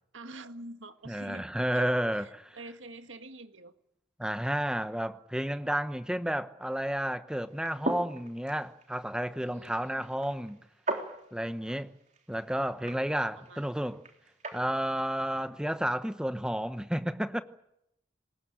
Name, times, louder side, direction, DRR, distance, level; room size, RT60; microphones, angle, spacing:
voice 1, 0.1-3.7 9.4-10.1 13.4-13.7, right 2 dB, 90° right, 1.8 m, -47 dB
voice 2, 1.1-2.6 4.2-10.6 11.3-11.9 12.3-14.0 14.5-17.4, equal, 5° right, 1.0 m, -31 dB
sound 1, 7.5-14.7, right 2 dB, 40° right, 3.5 m, -40 dB
24.0 x 20.5 x 9.0 m
head